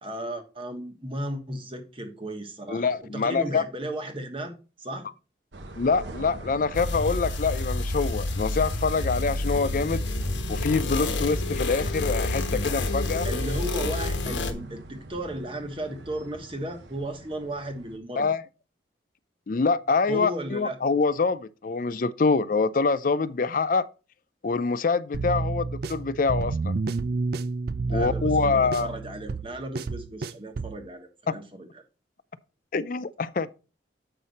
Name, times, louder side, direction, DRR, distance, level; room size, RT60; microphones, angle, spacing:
voice 1, 0.0-5.1 13.2-18.3 20.1-20.8 27.9-31.8, right 1 dB, 30° right, 1.3 m, -35 dB
voice 2, 2.7-3.6 5.8-10.1 10.5-13.3 18.2-18.4 19.5-23.9 24.4-26.7 27.9-28.9 31.3-31.4 32.7-33.5, left 4 dB, 45° left, 0.4 m, -25 dB
sound 1, 5.5-18.0, right 1 dB, 70° right, 0.9 m, -43 dB
sound 2, 6.7-14.5, left 2 dB, 85° left, 1.2 m, -28 dB
sound 3, 25.1-30.8, right 3 dB, 55° right, 0.4 m, -30 dB
7.9 x 5.8 x 4.1 m
head